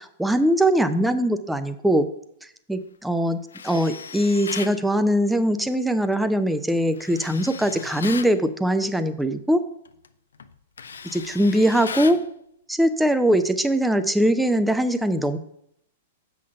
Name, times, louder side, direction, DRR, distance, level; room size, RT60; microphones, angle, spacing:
voice 1, 0.0-2.1 2.7-9.7 11.1-12.2 12.7-15.4, equal, 5° right, 10 dB, 0.7 m, -21 dB
Tools, 3.5-4.8 7.0-8.3 9.8-10.1 10.4-12.3, left 6 dB, 75° left, 0.5 m, -36 dB
7.5 x 5.9 x 5.2 m, 0.71 s
figure-of-eight pair, 105°, 0 cm